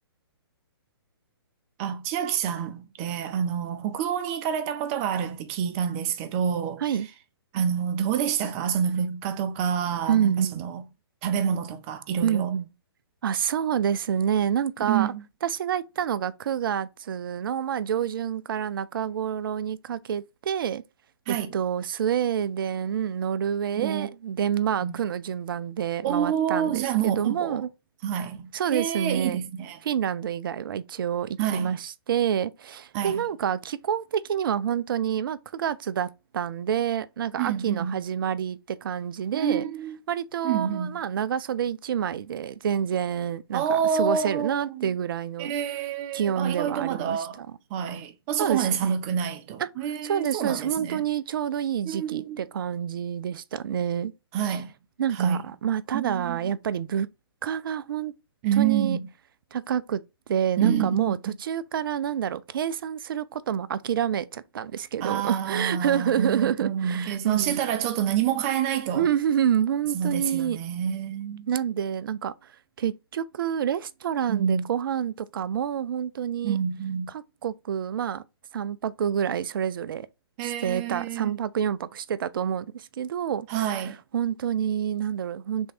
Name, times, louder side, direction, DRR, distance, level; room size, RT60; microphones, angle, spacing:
voice 1, 1.8-6.8 7.5-10.8 11.2-12.5 14.9-15.2 21.3-21.5 23.8-24.1 24.8-25.0 26.0-27.6 28.0-29.8 31.4-31.8 32.9-33.2 37.4-38.0 39.3-40.0 40.4-41.0 43.5-44.9 45.4-47.4 47.7-51.0 51.9-52.4 54.3-54.7 55.1-55.5 55.9-56.4 58.4-59.1 60.6-61.4 65.0-69.1 69.9-71.5 74.3-74.6 76.4-77.1 80.4-81.3 83.5-84.0, right 8 dB, 30° right, 0.7 m, -28 dB
voice 2, 10.1-10.6 12.2-12.7 13.2-15.1 15.4-20.8 21.3-27.7 28.5-29.4 29.8-39.6 40.1-45.5 46.1-47.6 48.4-48.9 49.6-54.1 54.4-54.6 55.0-57.1 57.4-58.1 58.6-59.0 59.5-60.0 60.3-67.6 68.9-70.6 71.5-76.6 77.1-78.2 78.5-80.1 80.4-83.8 84.1-85.7, right 9 dB, 60° right, 0.4 m, -28 dB
3.6 x 3.2 x 4.2 m
hypercardioid pair, 135°, 13 cm